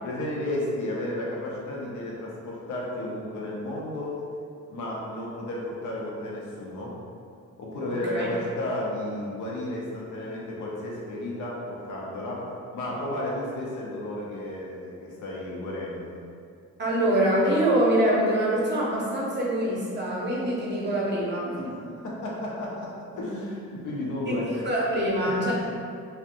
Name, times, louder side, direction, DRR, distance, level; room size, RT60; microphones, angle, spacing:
voice 1, 0.0-4.2 4.7-6.9 7.6-16.1 21.6-24.5 25.2-25.5, left 1 dB, 75° left, -4 dB, 0.7 m, -33 dB
voice 2, 7.9-8.3 16.8-21.7 24.3-25.5, right 1 dB, 35° right, -5 dB, 0.7 m, -25 dB
2.7 x 2.1 x 2.5 m, 2.3 s
cardioid pair, 90°, 30 cm